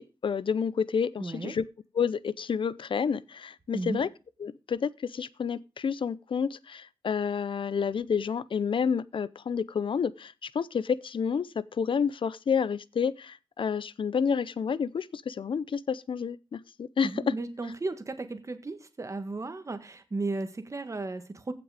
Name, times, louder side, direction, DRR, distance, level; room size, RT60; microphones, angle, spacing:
voice 1, 0.0-1.6 2.0-4.1 4.4-17.1, left 6 dB, 70° left, 0.6 m, -29 dB
voice 2, 1.2-1.5 3.7-4.0 17.0-21.5, right 3 dB, 35° right, 1.6 m, -35 dB
15.5 x 6.1 x 4.9 m
wide cardioid pair, 105°, 9 cm